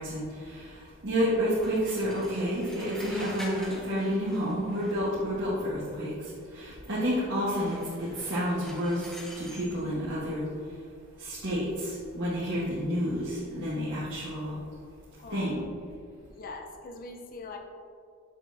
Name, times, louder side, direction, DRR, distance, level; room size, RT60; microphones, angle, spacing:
voice 1, 0.0-10.8 11.2-14.6 15.3-15.6, equal, 60° right, -9 dB, 1.4 m, -30 dB
sound 1, 1.6-5.4 7.5-9.8, left 1 dB, ahead, 0.8 m, -46 dB
voice 2, 15.2-15.6 16.3-17.6, left 3 dB, 45° left, 3 dB, 0.5 m, -42 dB
7.0 x 6.4 x 2.7 m, 2.2 s
head